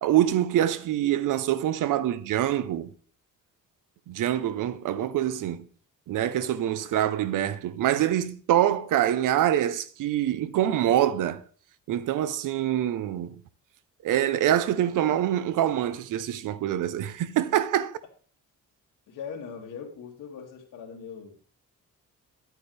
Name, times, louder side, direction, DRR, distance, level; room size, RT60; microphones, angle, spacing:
voice 1, 0.0-2.9 4.1-5.6 6.1-11.4 11.9-13.4 14.0-17.9, right 11 dB, 85° right, 0.7 m, -25 dB
voice 2, 19.1-21.4, left 6 dB, 90° left, 2.4 m, -40 dB
10.5 x 9.2 x 3.4 m
cardioid pair, 170°, 31 cm